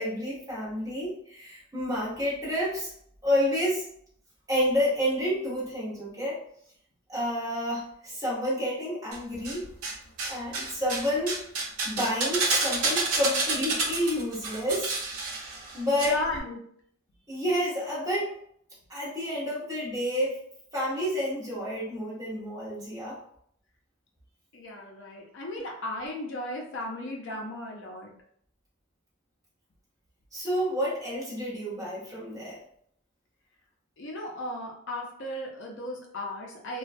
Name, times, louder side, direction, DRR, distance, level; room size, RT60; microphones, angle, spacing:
voice 1, 0.0-2.9 3.2-3.9 4.5-6.4 7.1-9.6 10.2-11.4 11.8-14.9 15.7-16.2 17.3-18.3 18.9-20.4 20.7-23.2 30.3-32.6, equal, 15° right, -8 dB, 0.9 m, -29 dB
sound 1, 9.1-9.9 10.2-16.1 16.3-16.4, right 3 dB, 90° right, 0.6 m, -29 dB
voice 2, 16.0-16.6 24.5-28.1 34.0-36.8, left 1 dB, 55° left, -1 dB, 0.5 m, -35 dB
2.2 x 2.2 x 2.5 m, 0.66 s
head